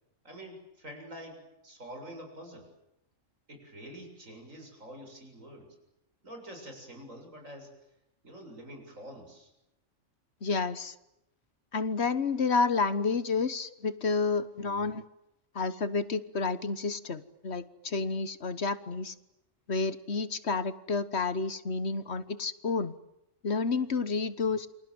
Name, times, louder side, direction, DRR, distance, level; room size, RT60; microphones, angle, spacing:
voice 1, 0.2-2.7 3.5-5.8 6.2-7.7 8.2-9.5, equal, 80° right, 4 dB, 7.8 m, -46 dB
voice 2, 10.4-10.9 11.7-15.0 15.5-19.1 19.7-22.9 23.4-24.7, left 4 dB, 55° left, 14 dB, 1.5 m, -30 dB
29.0 x 26.0 x 7.9 m, 0.87 s
omnidirectional pair, 1.3 m